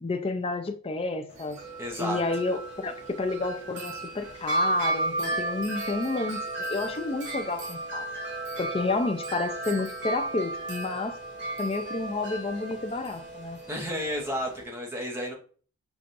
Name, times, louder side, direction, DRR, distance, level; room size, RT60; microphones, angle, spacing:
voice 1, 0.0-1.6 2.0-8.1 8.6-11.2 11.6-13.6, left 3 dB, 25° left, 0.4 m, -30 dB
Wind chime, 1.3-14.6, right 1 dB, 55° right, 1.1 m, -34 dB
voice 2, 1.8-2.2 13.7-15.3, equal, 10° right, 0.8 m, -32 dB
5.9 x 2.4 x 2.5 m
head